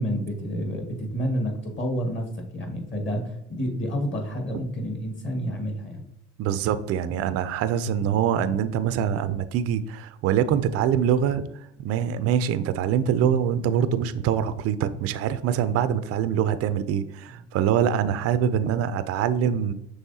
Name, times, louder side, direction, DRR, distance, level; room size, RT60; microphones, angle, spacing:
voice 1, 0.0-6.0 17.3-17.4, equal, 35° left, 3 dB, 1.5 m, -29 dB
voice 2, 6.4-11.4 11.8-19.7, right 9 dB, 45° right, 12 dB, 0.4 m, -24 dB
6.2 x 3.1 x 2.7 m, 0.83 s
hypercardioid pair, 75°, 35 cm